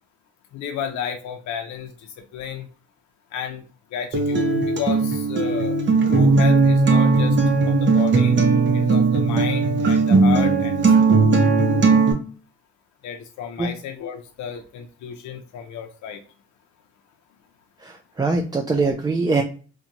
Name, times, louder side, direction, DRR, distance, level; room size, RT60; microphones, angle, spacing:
voice 1, 0.5-1.9 2.3-2.7 3.3-3.6 3.9-5.8 6.1-7.4 7.7-8.4 8.8-11.1 11.9-12.0 13.0-16.2, left 8 dB, 70° left, 4 dB, 0.5 m, -32 dB
Acoustic guitar, 4.1-12.1, right 4 dB, 40° right, 0.7 m, -17 dB
voice 2, 17.8-19.4, right 3 dB, 15° right, 1 dB, 0.3 m, -22 dB
2.6 x 2.2 x 2.8 m, 0.38 s
cardioid pair, 90°, 30 cm